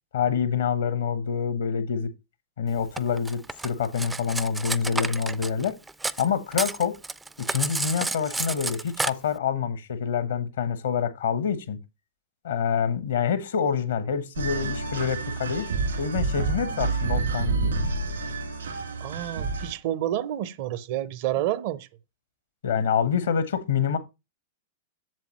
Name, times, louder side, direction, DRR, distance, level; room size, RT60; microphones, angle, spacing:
voice 1, 0.1-2.1 2.6-5.8 6.2-6.9 7.5-11.8 12.4-15.7 16.0-17.7 22.6-24.0, left 7 dB, 70° left, 1.0 m, -26 dB
Cutlery silverware, 3.0-6.3 6.5-9.1, right 3 dB, 10° right, 0.3 m, -30 dB
sound 1, 14.4-19.7, right 4 dB, 80° right, 2.0 m, -28 dB
voice 2, 19.0-21.9, right 13 dB, 55° right, 0.6 m, -29 dB
7.5 x 7.2 x 3.0 m
figure-of-eight pair, 100°, 0 cm